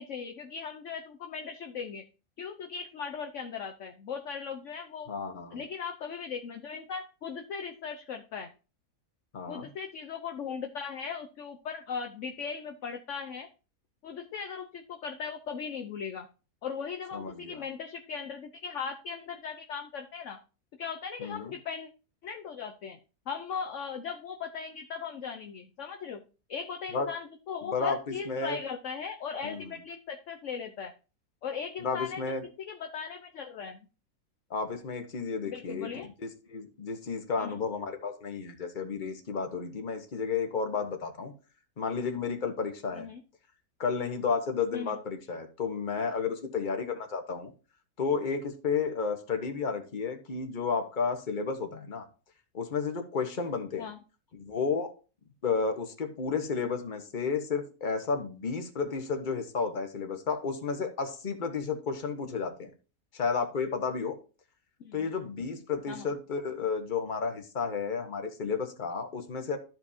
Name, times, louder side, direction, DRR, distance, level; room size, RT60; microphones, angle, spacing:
voice 1, 0.0-2.0 2.4-5.1 5.5-8.5 9.5-13.5 14.0-16.3 16.6-20.4 20.8-21.9 22.2-23.0 23.3-26.2 26.5-30.9 31.4-33.8 35.5-36.1 37.4-37.6 42.9-43.2 44.7-45.0 53.8-54.0 64.8-65.1 65.9-66.1, left 6 dB, 55° left, 4 dB, 0.9 m, -38 dB
voice 2, 5.1-5.6 9.3-9.7 17.1-17.6 21.2-21.5 26.9-27.1 27.6-28.6 29.4-29.7 31.8-32.4 34.5-35.9 36.2-41.3 41.8-43.1 43.8-47.5 48.0-52.1 52.5-53.9 54.4-54.9 55.4-62.7 63.1-64.2 64.9-69.6, left 5 dB, 35° left, 5 dB, 1.2 m, -32 dB
13.5 x 5.1 x 2.7 m, 0.33 s
omnidirectional pair, 1.7 m